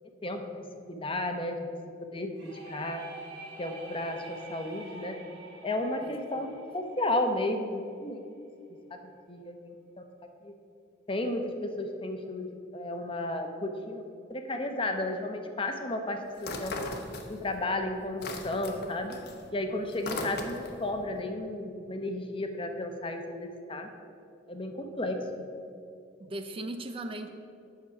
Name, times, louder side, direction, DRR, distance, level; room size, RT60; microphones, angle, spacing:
voice 1, 0.9-3.0 3.6-5.2 5.6-8.2 9.3-10.0 10.4-10.5 11.1-16.9 17.3-19.2 19.5-23.9 24.5-25.5, left 1 dB, 30° left, 5 dB, 0.8 m, -33 dB
sound 1, 2.4-8.0, right 2 dB, 65° right, 2.1 m, -47 dB
voice 2, 6.0-6.4 26.2-27.3, right 1 dB, 30° right, 7 dB, 0.4 m, -38 dB
sound 2, 16.4-17.6 17.9-20.9, left 2 dB, 60° left, 0.9 m, -38 dB
8.5 x 6.3 x 5.8 m, 2.5 s
head